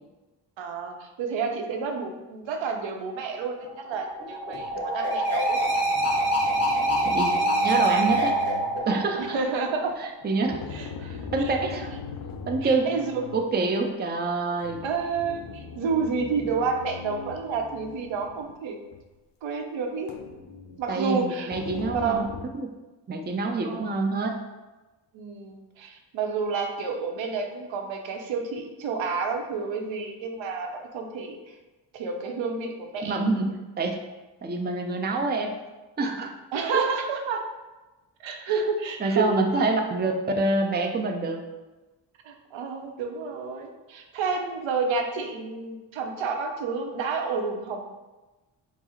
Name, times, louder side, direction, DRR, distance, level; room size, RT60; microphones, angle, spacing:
voice 1, 0.6-5.8 9.2-10.0 10.7-11.8 12.6-13.2 14.8-18.8 19.4-20.1 20.8-21.5 21.9-22.2 23.6-23.9 25.1-31.4 31.9-33.2 36.5-37.4 38.2-39.3 42.2-47.8, right 4 dB, 80° right, 4 dB, 0.7 m, -30 dB
sound 1, 3.6-10.0, right 1 dB, 30° left, 1.3 m, -25 dB
sound 2, 4.5-4.8 5.5-9.4 10.5-13.5 14.6-18.6 18.9-19.0 20.1-20.9 21.5-22.4, left 5 dB, 50° left, 0.6 m, -40 dB
voice 2, 7.6-8.4 8.9-9.4 10.0-10.6 11.3-11.9 12.5-13.0 13.3-14.8 20.9-22.2 22.5-22.7 23.1-24.4 33.0-33.9 34.4-35.6 36.0-36.3 36.7-36.8 38.5-38.6 39.0-41.4, right 3 dB, 20° right, 3 dB, 0.5 m, -26 dB
4.5 x 2.0 x 4.3 m, 1.1 s
cardioid pair, 65°, 46 cm